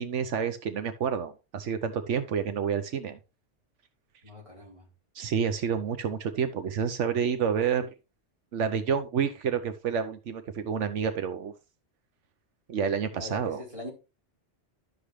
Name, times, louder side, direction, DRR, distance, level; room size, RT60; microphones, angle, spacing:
voice 1, 0.0-3.2 5.1-7.9 8.5-11.5 12.7-13.6, right 7 dB, 85° right, 1.2 m, -29 dB
voice 2, 4.2-4.9 13.1-13.9, left 2 dB, 25° right, 4.1 m, -42 dB
11.5 x 6.9 x 3.2 m
omnidirectional pair, 1.2 m